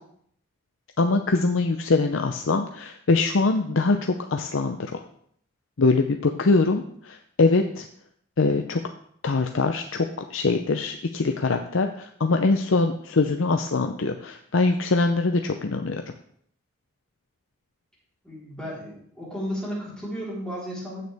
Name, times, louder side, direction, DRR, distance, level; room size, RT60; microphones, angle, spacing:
voice 1, 1.0-5.0 5.8-7.9 8.4-8.8 9.2-16.0, left 3 dB, 75° left, 5 dB, 0.6 m, -23 dB
voice 2, 18.2-21.0, equal, 5° left, -7 dB, 4.0 m, -33 dB
15.0 x 6.7 x 3.5 m, 0.65 s
head